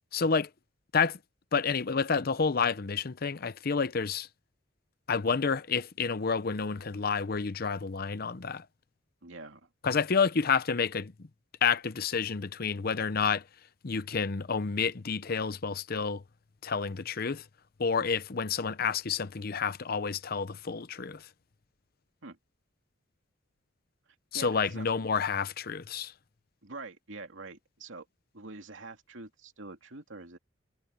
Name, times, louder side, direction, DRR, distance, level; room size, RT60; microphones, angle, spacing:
voice 1, 0.1-0.5 0.9-1.2 1.5-4.3 5.1-8.7 9.8-11.3 11.6-13.4 13.8-16.2 16.6-17.4 17.8-21.3 24.3-26.1, left 5 dB, 50° left, 0.7 m, -29 dB
voice 2, 9.2-9.6 22.2-22.4 24.3-24.8 26.6-28.1 28.3-30.4, right 3 dB, 75° right, 2.6 m, -45 dB
head